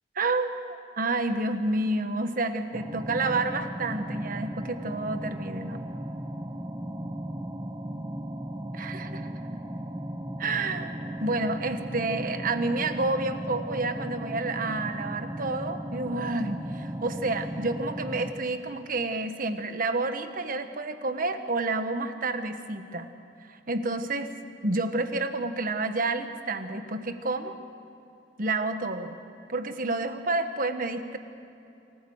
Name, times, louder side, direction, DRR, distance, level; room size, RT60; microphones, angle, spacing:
voice 1, 0.1-5.8 8.7-9.3 10.4-23.1 23.5-24.3 24.6-27.6 28.4-29.1 29.5-31.2, right 2 dB, 50° right, 8 dB, 1.3 m, -29 dB
sound 1, 2.7-18.3, right 1 dB, 20° right, 1.1 m, -36 dB
26.5 x 14.5 x 8.0 m, 2.8 s
head